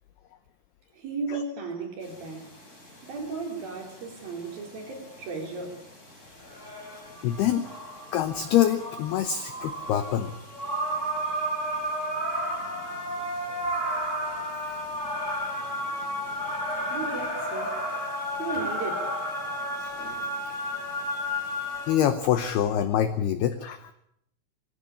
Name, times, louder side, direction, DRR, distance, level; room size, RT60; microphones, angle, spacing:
voice 1, 0.9-2.6 3.0-5.8 16.9-17.8 18.4-19.1, right 4 dB, 50° right, 1 dB, 5.3 m, -35 dB
sound 1, 2.0-22.0, equal, 15° left, 3.9 m, -33 dB
voice 2, 7.2-7.7 8.1-10.3 19.8-19.9 21.9-23.9, left 10 dB, 80° left, 11 dB, 2.3 m, -25 dB
21.0 x 16.0 x 8.5 m, 0.73 s
omnidirectional pair, 5.8 m